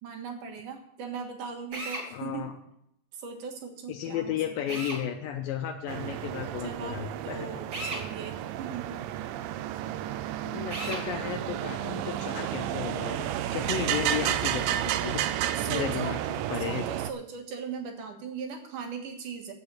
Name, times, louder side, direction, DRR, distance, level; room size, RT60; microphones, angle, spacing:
voice 1, 0.0-2.5 3.1-4.4 4.7-4.9 6.6-9.0 15.5-16.2 16.6-19.5, right 6 dB, 70° right, 3 dB, 3.0 m, -39 dB
Drill, 1.7-2.1 4.7-5.0 7.7-8.1 10.7-11.1, right 1 dB, 40° right, 4.0 m, -35 dB
voice 2, 2.1-2.5 3.9-7.5 10.4-15.2 15.7-16.2 16.5-16.8, left 10 dB, 85° left, 3 dB, 2.6 m, -34 dB
sound 1, 5.9-17.1, right 12 dB, 90° right, 2.3 m, -32 dB
8.8 x 6.9 x 8.3 m, 0.72 s
omnidirectional pair, 3.9 m